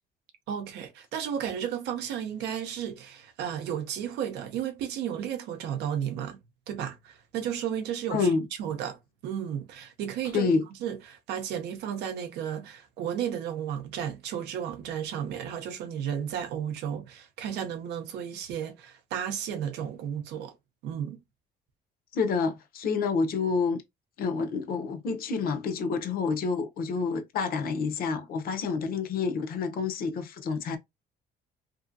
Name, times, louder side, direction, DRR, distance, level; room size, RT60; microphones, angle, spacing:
voice 1, 0.5-6.4 6.7-8.3 8.6-10.5 10.8-20.5 20.8-21.2, right 9 dB, 80° right, 0.6 m, -33 dB
voice 2, 8.1-8.5 10.3-10.7 22.1-23.8 24.2-30.8, left 5 dB, 60° left, 0.7 m, -28 dB
2.7 x 2.5 x 2.6 m
cardioid pair, 110°, 17 cm